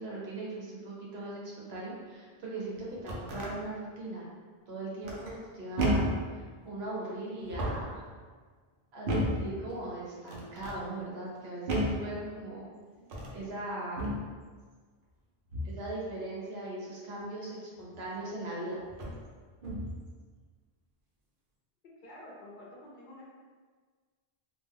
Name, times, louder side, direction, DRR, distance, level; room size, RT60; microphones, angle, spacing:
voice 1, 0.0-4.3 4.7-6.1 6.6-8.0 8.9-12.7 13.3-14.1 15.6-18.8, right 2 dB, 85° right, -5 dB, 1.0 m, -39 dB
sound 1, 2.8-3.5 5.0-5.4 5.8-6.3 7.4-8.0 9.1-9.5 10.3-10.8 11.7-12.1 13.0-13.4 14.0-14.3 15.5-15.8 17.9-18.0 18.9-19.2 19.6-20.0, equal, 65° right, 0.7 m, -32 dB
voice 2, 22.0-23.3, left 1 dB, 60° left, -4 dB, 0.7 m, -49 dB
2.4 x 2.2 x 3.3 m, 1.5 s
omnidirectional pair, 1.0 m